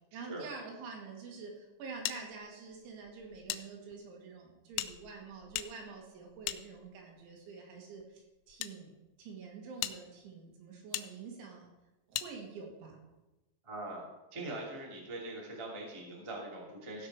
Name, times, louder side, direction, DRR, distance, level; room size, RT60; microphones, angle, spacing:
voice 1, 0.1-11.7 12.1-13.0, right 4 dB, 75° right, 0 dB, 4.1 m, -47 dB
sound 1, 2.1-3.6 3.9-4.0 4.7-7.2 8.0-8.7 9.3-9.4 9.8-10.0 10.9-11.1 12.1-12.3, left 15 dB, 90° left, 3.1 m, -39 dB
voice 2, 13.6-14.0 14.3-17.1, right 2 dB, 20° right, -3 dB, 0.7 m, -42 dB
15.5 x 6.6 x 4.7 m, 1.0 s
omnidirectional pair, 5.6 m